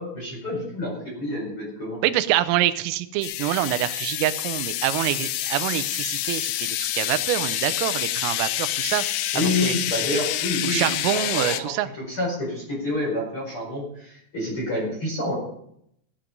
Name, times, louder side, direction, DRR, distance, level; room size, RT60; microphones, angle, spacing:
voice 1, 0.0-2.0 9.3-15.4, left 2 dB, 25° left, -3 dB, 5.5 m, -28 dB
voice 2, 2.0-9.0 9.4-9.8 10.1-10.2 10.6-11.9, right 14 dB, 85° right, 12 dB, 3.4 m, -26 dB
sound 1, 3.2-11.6, left 13 dB, 90° left, 2.4 m, -27 dB
17.5 x 8.7 x 5.3 m, 0.72 s
omnidirectional pair, 5.8 m